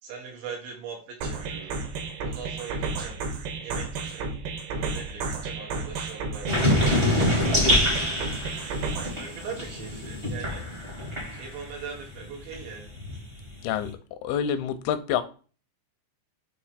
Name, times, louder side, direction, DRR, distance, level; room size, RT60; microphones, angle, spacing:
voice 1, 0.0-1.8 2.2-3.2 3.6-4.3 4.7-7.6 9.1-10.6 11.3-12.9, right 6 dB, 90° right, 4.0 m, -41 dB
sound 1, 1.2-9.2, right 4 dB, 75° right, 3.1 m, -32 dB
sound 2, 6.5-11.8 12.1-13.8, left 1 dB, 45° right, 0.7 m, -26 dB
voice 2, 13.6-15.2, left 9 dB, 80° left, 2.3 m, -28 dB
7.8 x 3.0 x 4.8 m
omnidirectional pair, 5.0 m